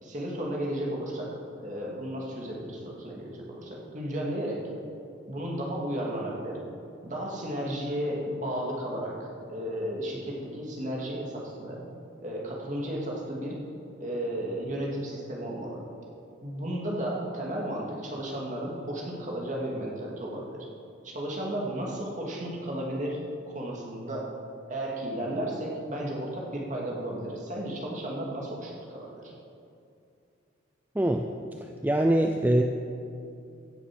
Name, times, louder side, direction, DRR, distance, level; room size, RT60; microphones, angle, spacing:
voice 1, 0.0-4.6 5.3-6.6 7.0-11.8 12.2-13.6 14.0-15.8 16.4-20.7 21.0-23.2 23.5-24.3 24.7-29.3, right 1 dB, 40° right, -3 dB, 2.4 m, -33 dB
voice 2, 30.9-31.3 31.6-32.6, right 1 dB, 10° right, 4 dB, 0.4 m, -24 dB
16.0 x 7.2 x 6.2 m, 2.5 s
head